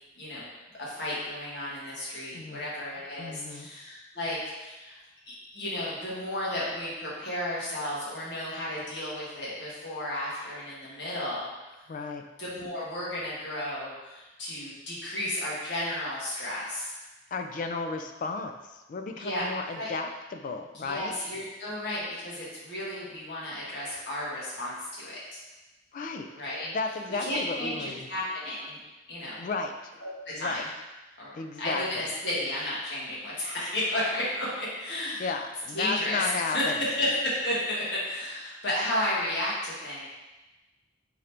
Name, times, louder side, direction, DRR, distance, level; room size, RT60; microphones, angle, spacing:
voice 1, 0.2-0.5 0.8-11.5 12.4-16.9 19.2-19.5 19.7-19.9 20.7-25.4 26.3-26.7 27.2-28.8 29.1-29.4 30.0-30.7 31.2-35.3 35.7-40.1, left 1 dB, 80° left, -7 dB, 1.3 m, -33 dB
voice 2, 2.3-2.6 3.2-3.7 11.9-12.2 17.3-18.5 18.9-21.1 25.9-26.3 26.6-28.1 29.4-29.7 30.3-30.6 31.4-32.1 35.2-36.7, left 4 dB, 50° left, 6 dB, 0.3 m, -33 dB
3.7 x 2.9 x 3.3 m, 1.1 s
head